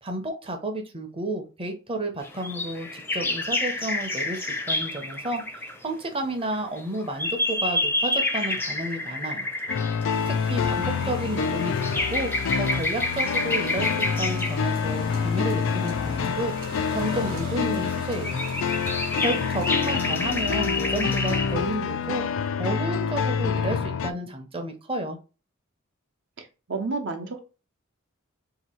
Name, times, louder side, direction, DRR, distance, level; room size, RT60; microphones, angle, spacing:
voice 1, 0.0-4.4 4.7-5.4 5.8-9.5 9.9-18.4 19.2-22.2 22.6-25.2, right 1 dB, 25° right, 4 dB, 0.7 m, -31 dB
sound 1, 2.2-5.8 6.5-14.7 15.9-16.0 16.6-17.6 17.9-21.6, left 2 dB, 10° left, 0.5 m, -29 dB
sound 2, 9.7-24.1, left 6 dB, 65° left, 0.3 m, -27 dB
sound 3, 10.1-22.1, right 2 dB, 45° right, 1.2 m, -43 dB
voice 2, 10.6-11.3 26.4-27.5, right 3 dB, 60° right, 5 dB, 0.8 m, -33 dB
2.9 x 2.7 x 4.3 m, 0.32 s
head